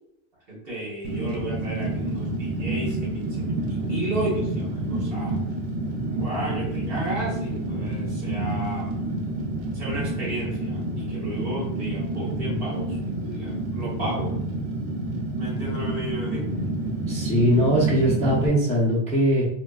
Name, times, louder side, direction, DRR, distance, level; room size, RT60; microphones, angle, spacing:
voice 1, 0.5-5.4 6.0-8.9 9.7-14.3 15.3-16.5, right 1 dB, 55° right, -5 dB, 1.2 m, -33 dB
Fire, 1.0-18.5, right 2 dB, 80° right, 0.9 m, -29 dB
voice 2, 17.1-19.4, equal, 10° left, -7 dB, 0.5 m, -21 dB
3.6 x 2.2 x 2.3 m, 0.76 s
omnidirectional pair, 1.2 m